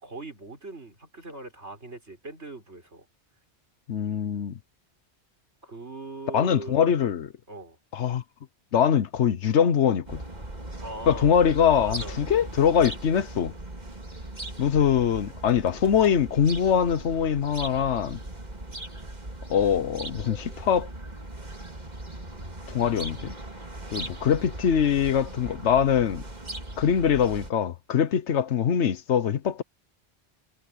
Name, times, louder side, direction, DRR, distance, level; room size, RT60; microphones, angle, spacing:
voice 1, 0.0-3.1 5.6-6.8 7.5-7.8 10.8-11.4 11.8-12.2, right 2 dB, 75° right, 5.9 m, -40 dB
voice 2, 3.9-4.5 6.3-7.3 7.9-8.2 8.7-10.2 11.1-13.5 14.6-18.2 19.5-20.9 22.7-23.4 23.9-26.2 26.8-29.6, left 8 dB, 90° left, 1.2 m, -23 dB
sound 1, 10.1-27.5, right 1 dB, 40° right, 2.7 m, -39 dB
omnidirectional pair, 1.1 m